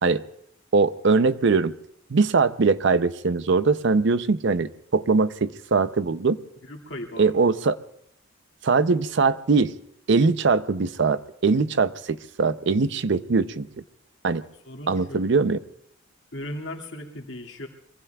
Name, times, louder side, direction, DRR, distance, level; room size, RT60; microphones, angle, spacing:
voice 1, 0.7-1.7 2.1-6.4 7.2-7.8 8.6-9.7 10.1-13.7 14.2-14.4 14.9-15.6, right 4 dB, 65° right, 13 dB, 0.6 m, -21 dB
voice 2, 6.6-7.4 14.4-15.2 16.3-17.7, left 1 dB, 70° left, 1 dB, 2.3 m, -37 dB
25.5 x 23.5 x 2.3 m, 0.73 s
head